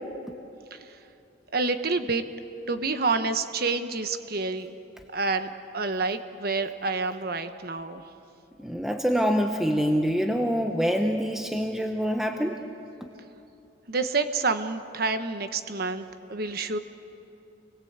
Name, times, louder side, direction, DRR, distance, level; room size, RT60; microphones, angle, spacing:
voice 1, 1.5-2.2 2.7-4.7 5.1-5.5 5.7-8.0 13.9-16.8, right 3 dB, 50° right, 9 dB, 1.2 m, -28 dB
voice 2, 8.6-12.6, equal, ahead, 3 dB, 0.9 m, -25 dB
28.5 x 21.0 x 8.1 m, 2.8 s
head